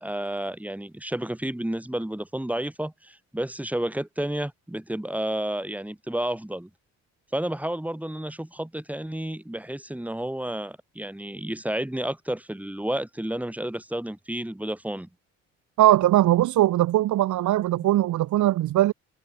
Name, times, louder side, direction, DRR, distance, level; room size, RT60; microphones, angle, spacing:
voice 1, 0.0-6.7 7.3-15.1 17.8-17.9, right 1 dB, 5° right, 4.2 m, -31 dB
voice 2, 15.8-18.9, right 14 dB, 75° right, 1.0 m, -20 dB
cardioid pair, 90°, 30 cm